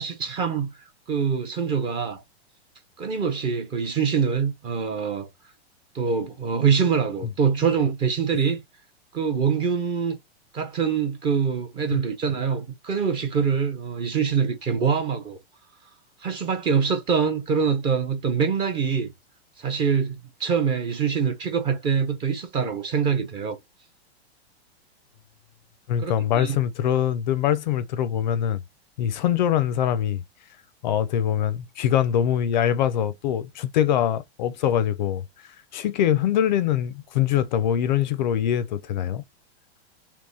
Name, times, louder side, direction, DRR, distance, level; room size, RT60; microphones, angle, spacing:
voice 1, 0.0-2.2 3.0-5.3 5.9-8.6 9.1-10.2 10.5-15.4 16.2-19.1 19.6-23.6 26.0-26.6, right 6 dB, 15° right, 0.5 m, -24 dB
voice 2, 25.9-28.6 29.0-30.2 30.8-35.2 35.7-39.2, left 10 dB, 45° left, 0.4 m, -23 dB
3.5 x 3.0 x 4.0 m
supercardioid pair, 160°, 33 cm